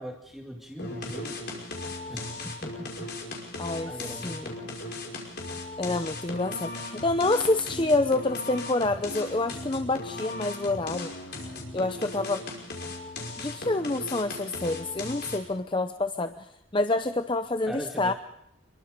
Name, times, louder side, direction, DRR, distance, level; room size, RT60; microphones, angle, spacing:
voice 1, 0.0-1.7 2.1-3.1 3.9-4.8 17.7-18.1, equal, ahead, 1 dB, 2.2 m, -40 dB
sound 1, 0.8-15.6, left 2 dB, 55° left, 5.5 m, -38 dB
voice 2, 3.6-3.9 4.2-4.5 5.8-11.1 11.7-12.4 13.4-18.1, left 2 dB, 25° left, 9 dB, 0.8 m, -27 dB
26.0 x 23.0 x 5.3 m, 0.78 s
head